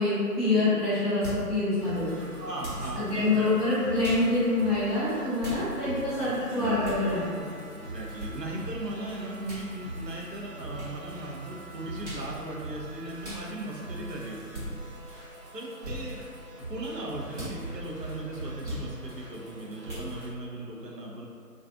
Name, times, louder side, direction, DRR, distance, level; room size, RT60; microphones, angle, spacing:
voice 1, 0.0-2.3 2.9-7.4, left 2 dB, ahead, -16 dB, 0.5 m, -26 dB
sound 1, 1.2-1.5 2.6-2.9 4.0-4.3 5.4-5.6 6.8-7.0 8.2-8.3 9.4-9.7 10.7-10.9 12.0-12.3 13.2-13.4 14.5-14.7 15.8-16.0 17.3-17.6 18.6-18.9 19.8-20.1, right 1 dB, 45° right, 1.1 m, -38 dB
sound 2, 1.8-20.3, right 2 dB, 70° right, 1.3 m, -42 dB
voice 2, 2.2-3.5 5.8-7.1 7.7-14.7 15.1-15.2 15.5-16.2 16.7-21.3, right 1 dB, 85° right, -2 dB, 0.7 m, -38 dB
2.4 x 2.3 x 2.5 m, 2.3 s
figure-of-eight pair, 165°, 48 cm